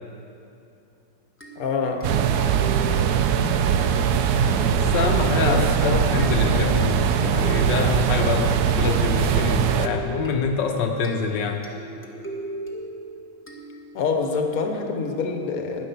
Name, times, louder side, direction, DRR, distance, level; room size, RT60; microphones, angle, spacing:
sound 1, 1.4-14.2, right 1 dB, 10° left, 1.0 m, -38 dB
voice 1, 1.6-2.1 5.5-6.6 13.9-15.9, left 4 dB, 55° left, 4 dB, 1.4 m, -26 dB
sound 2, 2.0-9.9, right 8 dB, 70° right, 1.1 m, -21 dB
voice 2, 4.9-11.6, left 5 dB, 80° left, 3 dB, 1.4 m, -25 dB
10.0 x 9.9 x 6.9 m, 2.7 s
omnidirectional pair, 1.9 m